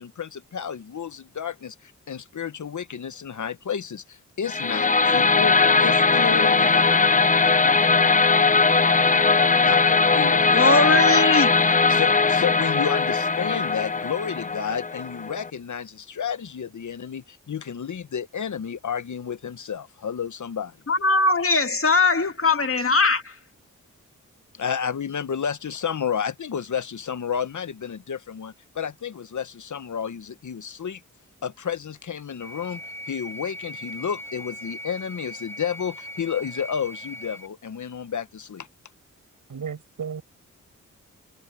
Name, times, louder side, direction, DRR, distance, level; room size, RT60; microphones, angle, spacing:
voice 1, 0.0-6.8 9.6-9.8 10.1-10.4 11.9-20.8 24.6-31.0 31.4-32.8 33.1-38.7, left 7 dB, 65° left, 1.1 m, -31 dB
sound 1, 4.5-15.5, left 4 dB, 25° left, 0.7 m, -19 dB
voice 2, 10.5-11.6 20.9-23.3, left 3 dB, 45° left, 2.5 m, -20 dB
sound 2, 32.4-37.5, equal, 10° left, 7.0 m, -39 dB
voice 3, 39.5-40.2, right 6 dB, 75° right, 6.4 m, -33 dB
cardioid pair, 55°, 32 cm